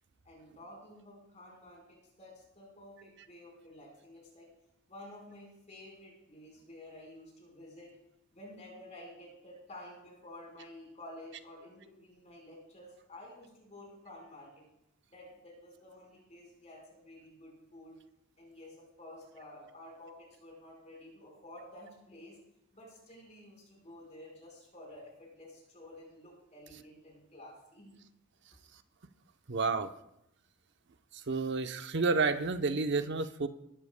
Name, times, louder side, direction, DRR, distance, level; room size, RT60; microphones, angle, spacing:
voice 1, 0.2-4.5 4.9-7.9 8.3-14.7 15.1-18.0 18.4-22.4 22.7-28.0, left 1 dB, 35° left, -2 dB, 4.4 m, -51 dB
voice 2, 29.5-29.9 31.1-33.5, right 4 dB, 55° right, 9 dB, 0.7 m, -30 dB
21.0 x 12.0 x 2.2 m, 0.81 s
head